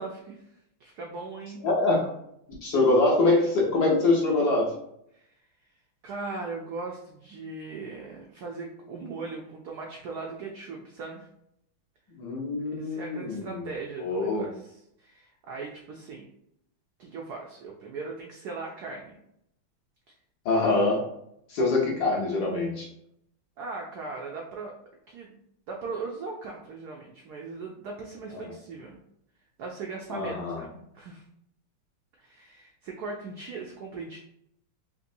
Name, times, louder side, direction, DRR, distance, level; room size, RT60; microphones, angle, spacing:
voice 1, 0.0-1.6 5.1-5.3 6.0-11.3 12.8-16.2 17.0-19.2 23.6-24.7 25.1-25.4 25.7-29.0 29.6-31.2 32.2-34.2, right 4 dB, 80° right, -1 dB, 0.8 m, -39 dB
voice 2, 1.6-2.1 2.6-4.7 12.2-13.7 14.0-14.5 20.4-21.0 21.5-22.9 30.1-30.6, left 2 dB, 60° left, -2 dB, 1.2 m, -24 dB
4.1 x 2.6 x 2.6 m, 0.75 s
omnidirectional pair, 2.3 m